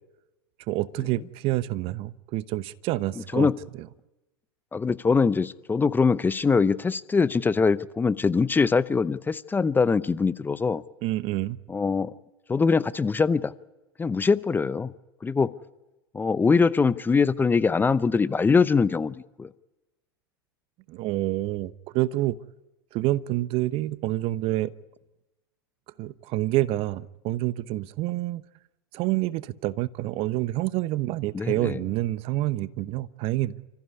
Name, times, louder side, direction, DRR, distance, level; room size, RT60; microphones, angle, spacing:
voice 1, 0.7-3.5 11.0-11.6 20.9-22.4 22.9-24.7 26.0-28.4 28.9-33.6, right 16 dB, 50° right, 0.9 m, -27 dB
voice 2, 3.2-3.6 4.7-10.8 11.7-12.1 12.5-13.5 14.0-14.9 15.2-15.5 16.1-19.5 31.3-31.8, left 5 dB, 15° left, 0.7 m, -23 dB
29.5 x 14.5 x 9.7 m
hypercardioid pair, 95°, 13 cm